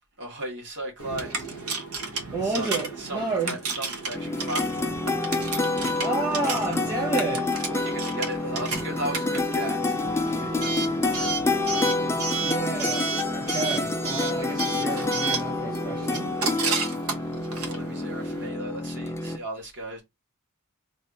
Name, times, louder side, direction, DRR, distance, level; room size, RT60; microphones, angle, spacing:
voice 1, 0.2-1.4 2.4-2.7 3.0-4.9 7.5-9.9 10.2-12.2 16.5-16.8 17.6-20.0, right 1 dB, 55° right, 1.7 m, -36 dB
Coin (dropping) / Alarm, 1.0-18.5, right 4 dB, 75° right, 1.0 m, -33 dB
voice 2, 2.3-3.5 6.0-7.6 10.3-10.5 12.4-16.3, right 3 dB, 20° right, 1.1 m, -31 dB
sound 1, 4.1-19.4, left 2 dB, 10° left, 0.4 m, -28 dB
3.2 x 2.6 x 4.5 m
head